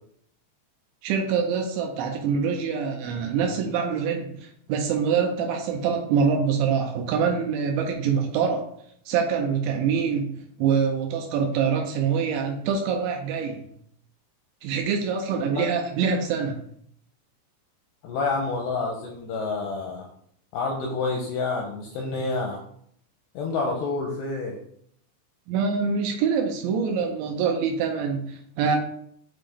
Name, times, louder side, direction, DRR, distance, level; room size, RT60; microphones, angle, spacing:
voice 1, 1.0-8.7 9.1-13.7 14.6-16.6 25.5-28.8, right 6 dB, 80° right, 3 dB, 2.7 m, -25 dB
voice 2, 18.0-20.1 20.5-22.6 23.3-24.6, left 3 dB, 80° left, 1 dB, 2.4 m, -28 dB
8.3 x 3.7 x 3.5 m, 0.66 s
omnidirectional pair, 5.7 m